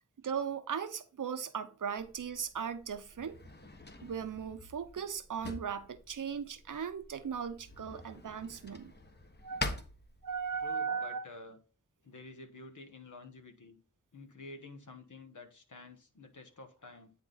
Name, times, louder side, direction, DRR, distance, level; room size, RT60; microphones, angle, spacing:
voice 1, 0.2-3.4 4.0-8.9 9.4-9.8 10.2-11.2, right 7 dB, 75° right, 0.7 m, -37 dB
Drawer open or close, 2.0-10.7, left 2 dB, 35° left, 1.1 m, -45 dB
voice 2, 10.6-11.6 12.0-13.8 14.1-17.1, left 3 dB, 70° left, 1.3 m, -50 dB
9.5 x 3.7 x 3.9 m
wide cardioid pair, 75°, 31 cm